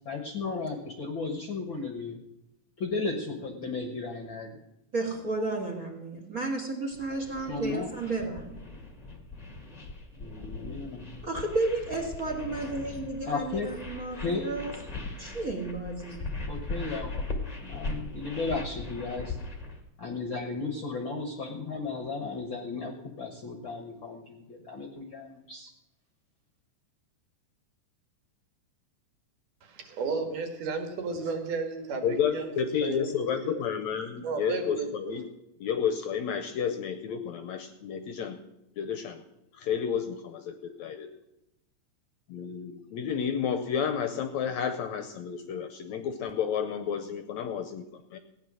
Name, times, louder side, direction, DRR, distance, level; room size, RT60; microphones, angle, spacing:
voice 1, 0.0-2.2 2.8-4.6 7.5-7.9 10.2-11.1 13.3-13.7 14.2-14.4 16.5-17.3 17.6-19.4 20.0-25.7, left 4 dB, 60° left, 4 dB, 1.3 m, -34 dB
voice 2, 4.9-8.6 11.2-14.7 15.2-16.2, right 2 dB, 35° right, 2 dB, 1.5 m, -32 dB
sound 1, 6.9-19.8, left 2 dB, 25° left, 0.8 m, -39 dB
voice 3, 29.6-33.7 34.2-35.2, right 4 dB, 75° right, 5 dB, 3.2 m, -34 dB
voice 4, 32.0-35.3 35.6-38.4 38.8-39.2 39.5-41.1 42.3-48.2, left 7 dB, 75° left, 8 dB, 1.7 m, -31 dB
16.0 x 9.4 x 6.2 m, 0.91 s
omnidirectional pair, 3.8 m